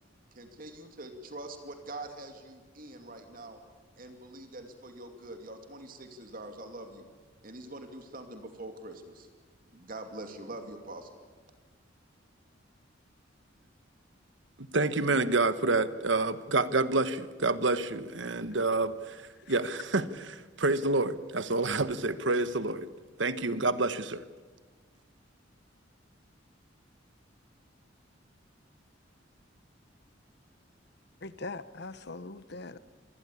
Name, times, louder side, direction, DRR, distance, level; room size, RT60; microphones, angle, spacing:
voice 1, 0.3-3.6 4.0-7.1 7.4-9.3 9.7-11.1, right 2 dB, 50° right, 6 dB, 2.6 m, -44 dB
voice 2, 14.6-19.2 19.5-20.1 20.3-22.9 23.2-24.2, right 3 dB, 70° right, 13 dB, 1.3 m, -28 dB
voice 3, 31.2-32.8, left 3 dB, 60° left, 14 dB, 1.1 m, -41 dB
26.0 x 20.5 x 8.5 m, 1.4 s
head